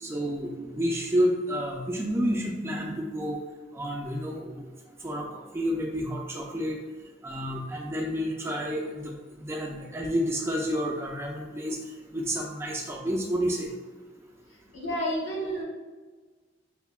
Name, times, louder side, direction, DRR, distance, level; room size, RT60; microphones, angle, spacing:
voice 1, 0.0-3.4 3.7-4.7 5.0-5.3 5.5-6.8 7.2-9.1 9.4-11.8 12.1-13.7, equal, 15° right, -1 dB, 0.3 m, -29 dB
voice 2, 14.7-15.6, equal, 70° left, -5 dB, 1.3 m, -30 dB
5.3 x 2.1 x 2.2 m, 1.4 s
head